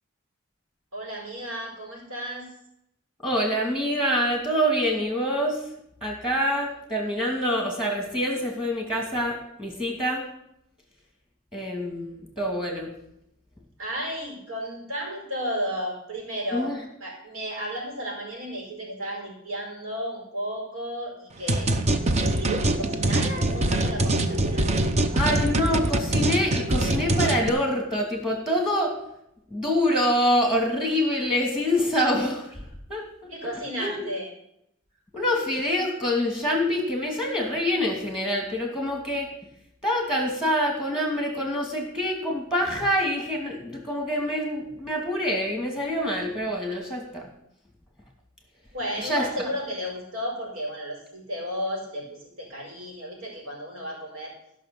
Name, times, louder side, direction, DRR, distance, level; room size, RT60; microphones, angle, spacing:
voice 1, 0.9-2.5 13.8-16.7 17.0-21.7 22.2-24.7 33.3-34.3 48.7-54.3, equal, 80° right, -1 dB, 5.1 m, -33 dB
voice 2, 3.2-5.6 6.0-10.2 11.5-12.9 16.5-16.8 25.1-28.9 29.5-32.6 32.9-33.3 33.8-34.0 35.1-39.3 39.8-47.3 49.1-49.2, equal, 5° right, 1 dB, 2.4 m, -26 dB
sound 1, 21.5-27.5, right 1 dB, 30° right, 0.8 m, -24 dB
14.5 x 6.0 x 7.1 m, 0.76 s
head